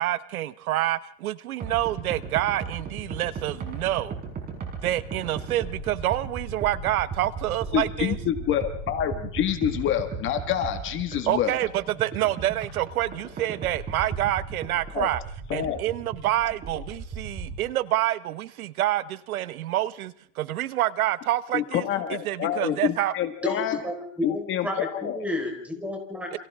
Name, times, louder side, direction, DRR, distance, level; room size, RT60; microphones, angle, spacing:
voice 1, 0.0-4.2 4.8-8.2 11.3-15.2 15.5-21.8 22.1-23.1 26.3-26.4, right 14 dB, 80° right, 1.1 m, -27 dB
sound 1, 1.6-17.6, right 5 dB, 20° right, 5.8 m, -36 dB
voice 2, 7.7-11.5 14.9-15.1 15.5-15.8 21.5-23.8 24.2-25.3, left 10 dB, 30° left, 1.8 m, -27 dB
voice 3, 23.4-26.4, left 1 dB, 5° right, 4.7 m, -31 dB
29.0 x 27.5 x 3.7 m
supercardioid pair, 150°, 42 cm